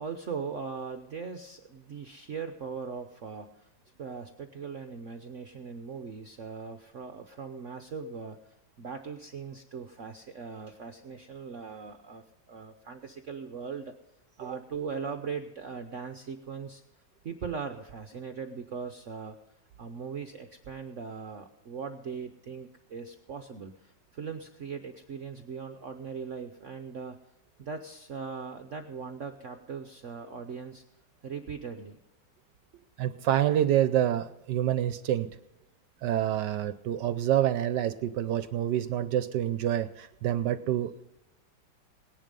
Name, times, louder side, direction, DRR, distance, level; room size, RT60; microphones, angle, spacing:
voice 1, 0.0-3.7 4.0-13.9 14.4-16.8 17.2-19.4 19.8-27.2 27.6-30.8 31.2-32.0 32.7-32.8, right 5 dB, 50° right, 7 dB, 1.0 m, -40 dB
voice 2, 33.0-35.4 36.0-41.1, right 11 dB, 70° right, 13 dB, 1.2 m, -27 dB
18.5 x 11.0 x 5.4 m, 0.88 s
omnidirectional pair, 2.0 m